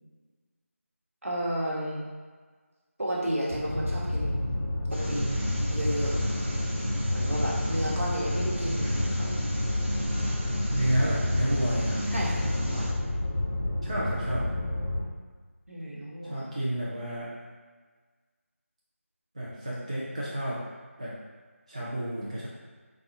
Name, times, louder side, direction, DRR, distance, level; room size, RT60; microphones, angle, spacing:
voice 1, 1.2-2.1 3.0-4.5 4.9-5.4 5.7-6.4 7.1-9.3 12.1-12.9 15.7-16.5, right 1 dB, 75° right, -5 dB, 1.1 m, -32 dB
sound 1, 3.5-15.0, left 1 dB, 10° left, 0.7 m, -30 dB
sound 2, 4.9-12.9, right 1 dB, 50° right, 1.0 m, -34 dB
voice 2, 10.7-12.0 13.8-14.5 16.2-17.4 19.3-20.6 21.0-21.2 21.7-22.5, right 1 dB, 25° right, -7 dB, 0.4 m, -30 dB
4.2 x 2.3 x 2.6 m, 1.4 s
figure-of-eight pair, 170°, 8 cm